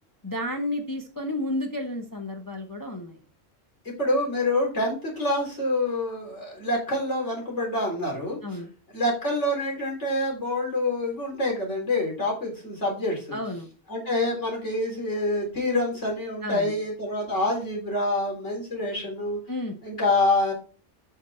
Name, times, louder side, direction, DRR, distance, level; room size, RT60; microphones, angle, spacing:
voice 1, 0.2-3.2 8.4-8.7 13.3-13.7 16.4-16.8 19.5-19.7, left 1 dB, 20° left, 3 dB, 0.8 m, -31 dB
voice 2, 4.0-8.4 8.9-13.4 13.9-19.4 19.8-20.5, left 2 dB, 65° left, -1 dB, 4.0 m, -26 dB
8.2 x 5.8 x 4.3 m, 0.36 s
omnidirectional pair, 1.3 m